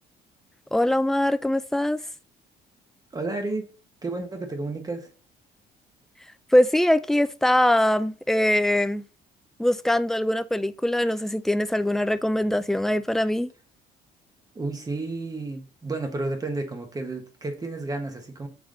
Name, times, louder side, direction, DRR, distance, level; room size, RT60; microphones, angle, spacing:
voice 1, 0.7-2.0 6.5-9.0 9.6-13.5, left 1 dB, ahead, 0.3 m, -22 dB
voice 2, 3.1-3.7 4.0-5.1 14.5-18.5, right 2 dB, 20° right, 1.3 m, -31 dB
7.2 x 3.4 x 3.8 m
cardioid pair, 110°, 17 cm